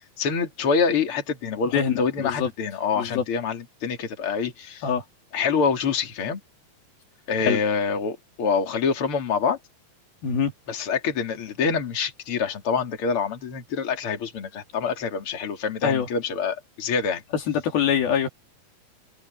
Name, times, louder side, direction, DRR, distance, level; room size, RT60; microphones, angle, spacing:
voice 1, 0.0-4.8 5.3-6.4 7.3-9.6 10.7-17.2, left 5 dB, 40° left, 3.5 m, -26 dB
voice 2, 1.7-2.5 3.0-3.2 4.8-5.0 7.4-7.6 10.2-10.5 15.8-16.1 17.5-18.3, left 8 dB, 80° left, 4.4 m, -23 dB
omnidirectional pair, 4.2 m